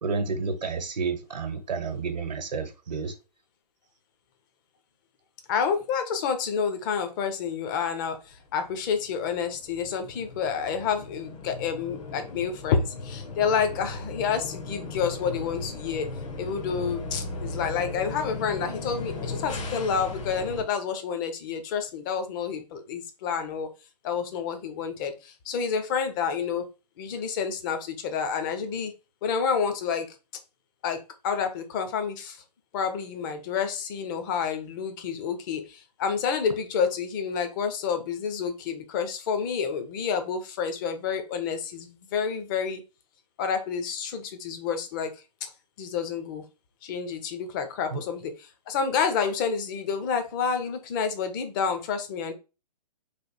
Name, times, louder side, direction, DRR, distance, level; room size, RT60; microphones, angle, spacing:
voice 1, 0.0-3.1 47.9-48.0, right 4 dB, 80° right, 0.9 m, -30 dB
voice 2, 5.5-16.1 16.4-23.7 24.0-26.7 27.0-28.9 29.2-30.1 30.8-32.4 32.7-42.8 43.4-45.5 45.8-46.4 46.8-48.3 48.7-52.3, left 6 dB, 30° left, 0.7 m, -29 dB
sound 1, 8.3-20.6, left 3 dB, 50° left, 1.1 m, -37 dB
3.3 x 2.5 x 3.9 m
hypercardioid pair, 135°, 21 cm